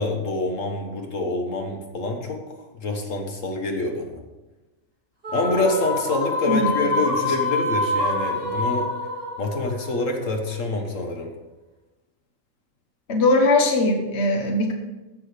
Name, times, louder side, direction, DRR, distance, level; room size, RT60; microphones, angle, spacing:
voice 1, 0.0-4.2 5.3-8.9 9.4-11.3, left 2 dB, 70° left, 3 dB, 1.7 m, -26 dB
sound 1, 5.2-10.7, left 2 dB, 45° right, 3.2 m, -26 dB
voice 2, 6.5-6.8 13.1-14.7, left 2 dB, 55° left, 3 dB, 1.4 m, -20 dB
15.0 x 6.2 x 5.0 m, 1.1 s
omnidirectional pair, 1.4 m